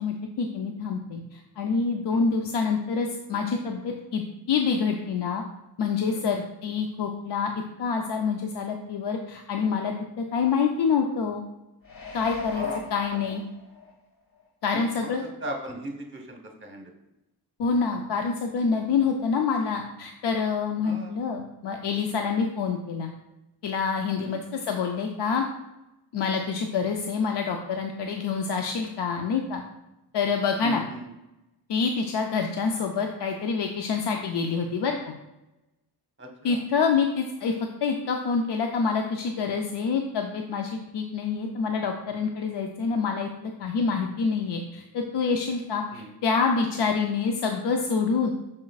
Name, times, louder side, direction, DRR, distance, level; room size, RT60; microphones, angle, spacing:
voice 1, 0.0-4.2 4.5-5.4 5.8-7.5 7.8-11.4 12.1-12.6 12.9-13.4 14.6-15.2 17.6-23.1 23.6-25.5 26.1-29.6 30.1-30.8 31.7-35.1 36.4-37.5 37.8-48.3, left 5 dB, 75° left, 3 dB, 0.6 m, -27 dB
sound 1, 11.8-13.9 14.4-14.5, left 5 dB, 55° left, 1.0 m, -37 dB
voice 2, 14.7-15.1 15.4-16.9 20.8-21.2 24.2-24.4 30.6-31.1 36.2-36.6 45.9-46.1, right 1 dB, 30° right, 2 dB, 1.0 m, -38 dB
7.2 x 6.4 x 2.3 m, 0.96 s
wide cardioid pair, 155°, 41 cm